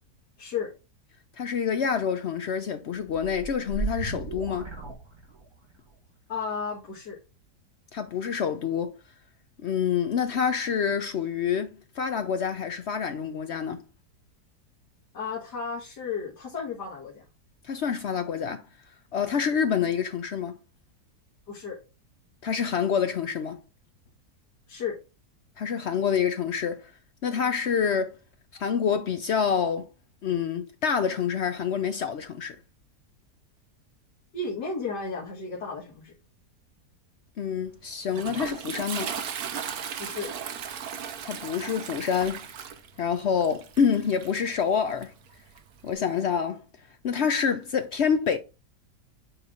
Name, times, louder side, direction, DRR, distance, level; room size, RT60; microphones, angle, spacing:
voice 1, 0.4-0.7 6.3-7.2 15.1-17.2 21.5-21.8 24.7-25.0 34.3-36.1 40.0-40.3, left 5 dB, 85° left, 2.3 m, -33 dB
voice 2, 1.4-4.7 7.9-9.0 9.6-13.8 17.7-18.6 19.1-20.6 22.4-23.6 25.6-26.9 27.2-28.2 28.6-29.9 30.2-32.6 37.4-39.1 41.2-42.5 43.0-45.1 45.8-46.6 47.0-48.4, left 7 dB, 65° left, 0.6 m, -27 dB
sound 1, 3.0-5.7, right 4 dB, 20° right, 1.6 m, -35 dB
Toilet flush, 37.6-45.9, right 8 dB, 65° right, 1.3 m, -37 dB
8.8 x 3.2 x 3.8 m
omnidirectional pair, 1.7 m